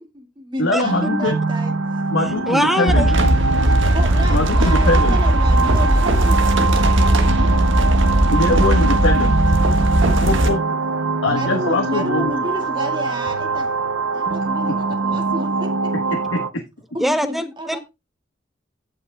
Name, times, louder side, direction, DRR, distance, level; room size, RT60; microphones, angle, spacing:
voice 1, 0.0-1.7 3.9-7.8 8.8-8.9 10.0-10.5 11.3-13.7 14.1-15.9 16.9-17.8, equal, 25° right, 1.9 m, -31 dB
voice 2, 0.6-1.3 2.1-3.3 4.3-5.2 8.3-9.4 10.2-10.6 11.2-12.3 16.1-16.4, left 2 dB, 85° left, 1.2 m, -22 dB
sound 1, 0.8-16.5, right 3 dB, 90° right, 0.6 m, -23 dB
voice 3, 2.5-3.1 17.0-17.8, equal, ahead, 0.7 m, -21 dB
sound 2, 2.9-10.5, right 1 dB, 70° right, 1.4 m, -17 dB
16.0 x 5.8 x 2.2 m
head